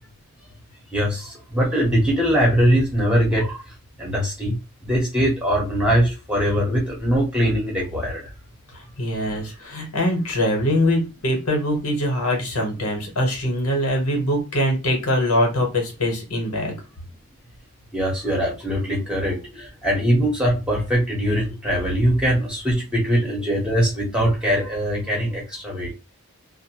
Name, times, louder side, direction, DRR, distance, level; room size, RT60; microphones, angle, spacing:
voice 1, 0.9-3.6 4.0-4.5 4.8-8.2 17.9-25.9, equal, 5° right, -3 dB, 0.9 m, -21 dB
voice 2, 8.7-16.8, left 1 dB, 85° left, 1 dB, 1.1 m, -23 dB
2.6 x 2.2 x 2.8 m, 0.29 s
head